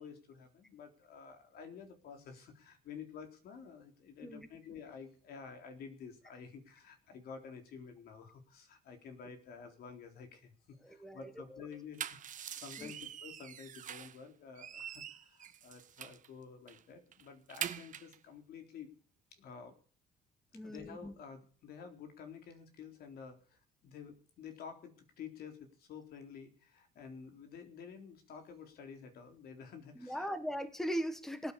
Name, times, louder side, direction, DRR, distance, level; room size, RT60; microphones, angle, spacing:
voice 1, 0.0-18.9 19.3-19.8 20.5-30.3, left 6 dB, 65° left, 5 dB, 3.7 m, -51 dB
voice 2, 10.8-11.7 12.8-12.9 20.5-21.1 29.9-31.5, equal, ahead, 11 dB, 1.5 m, -39 dB
sound 1, 11.7-14.2 14.6-16.3 16.7-16.8 17.1-18.2, right 9 dB, 50° right, 1.4 m, -44 dB
18.5 x 9.2 x 6.9 m, 0.42 s
cardioid pair, 110°, 17 cm